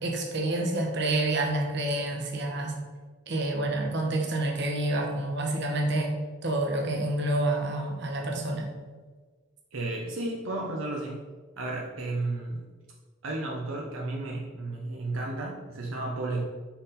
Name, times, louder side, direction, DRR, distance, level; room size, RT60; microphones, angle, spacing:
voice 1, 0.0-2.8 3.3-6.2 6.4-8.7, right 2 dB, 60° right, 1 dB, 1.1 m, -28 dB
voice 2, 9.7-11.2 11.6-12.7 13.2-16.5, right 2 dB, 80° right, -1 dB, 0.7 m, -33 dB
5.9 x 4.0 x 4.1 m, 1.4 s
head